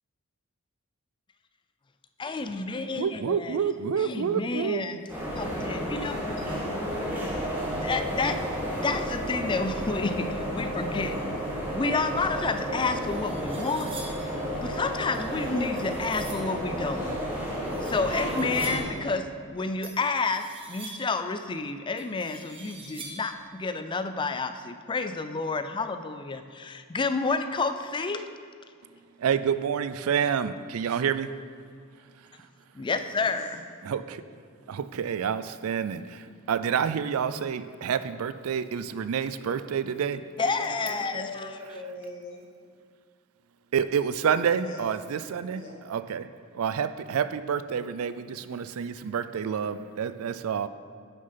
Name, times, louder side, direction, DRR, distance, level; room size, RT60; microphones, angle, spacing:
voice 1, 2.2-3.6 4.0-5.0 5.4-6.2 7.8-8.4 8.8-11.2 11.7-13.9 14.6-17.2 17.8-28.3 32.8-33.6 40.4-41.5, left 3 dB, 20° left, 9 dB, 0.4 m, -30 dB
voice 2, 3.0-4.8 29.2-31.3 33.8-34.2 34.7-40.2 43.7-46.3 46.5-50.7, right 7 dB, 80° right, 13 dB, 0.4 m, -28 dB
sound 1, 5.1-18.8, equal, 10° right, 2.0 m, -32 dB
voice 3, 6.5-8.0 33.1-33.4 40.4-42.4 44.6-44.9 45.5-45.8, left 1 dB, 60° left, -3 dB, 2.2 m, -41 dB
sound 2, 12.9-14.3 15.1-16.5 17.5-19.0 19.8-21.2 22.0-23.4, right 3 dB, 25° right, 1.3 m, -45 dB
9.3 x 6.4 x 5.7 m, 2.2 s
head